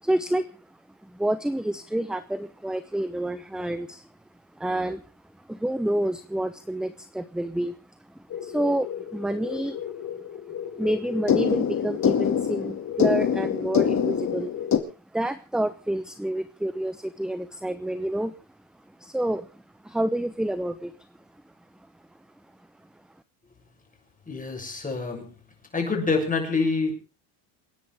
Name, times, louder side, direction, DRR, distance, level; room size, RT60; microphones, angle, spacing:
voice 1, 0.0-0.7 1.0-4.0 4.6-5.0 5.4-10.1 10.8-14.5 15.1-18.3 18.9-20.9, right 1 dB, ahead, 13 dB, 0.7 m, -29 dB
sound 1, 8.3-14.8, left 8 dB, 35° left, 2.3 m, -26 dB
voice 2, 24.3-25.3 25.7-26.9, left 4 dB, 15° left, 2 dB, 7.0 m, -26 dB
28.0 x 10.5 x 3.6 m, 0.33 s
supercardioid pair, 110°, 47 cm